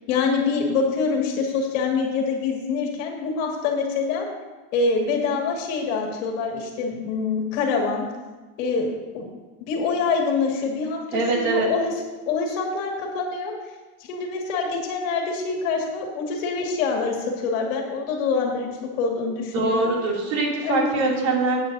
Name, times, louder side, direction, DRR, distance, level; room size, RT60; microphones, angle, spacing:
voice 1, 0.1-4.3 4.7-8.1 8.6-9.3 9.6-11.9 12.3-13.5 14.1-19.9 20.6-21.0, left 4 dB, 55° left, 1 dB, 2.3 m, -25 dB
voice 2, 11.1-11.7 19.5-21.6, right 3 dB, 55° right, -2 dB, 3.1 m, -23 dB
15.0 x 9.0 x 2.8 m, 1.3 s
supercardioid pair, 140°, 46 cm